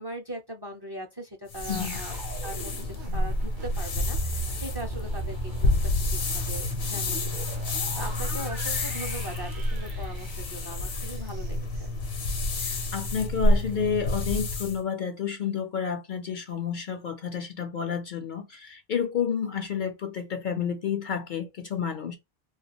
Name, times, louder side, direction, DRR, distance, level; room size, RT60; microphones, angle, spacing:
voice 1, 0.0-7.5 7.7-11.9, right 1 dB, 30° right, 0.5 m, -40 dB
sound 1, 1.5-14.8, left 2 dB, 75° left, 1.0 m, -29 dB
sound 2, 1.6-12.7 13.0-13.2, right 5 dB, 50° right, 0.9 m, -40 dB
voice 2, 1.7-2.0 12.6-22.2, left 7 dB, 60° left, 0.6 m, -30 dB
2.3 x 2.3 x 2.8 m
omnidirectional pair, 1.1 m